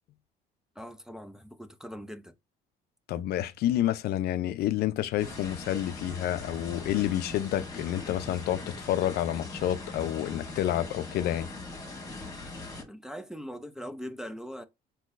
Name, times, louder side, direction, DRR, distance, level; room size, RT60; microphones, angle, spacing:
voice 1, 0.8-2.3 12.8-14.6, equal, 5° right, 0.4 m, -41 dB
voice 2, 3.1-11.5, left 12 dB, 70° left, 0.4 m, -29 dB
sound 1, 5.2-12.8, left 3 dB, 20° left, 1.5 m, -41 dB
3.8 x 2.7 x 2.5 m
cardioid pair, 110°, 17 cm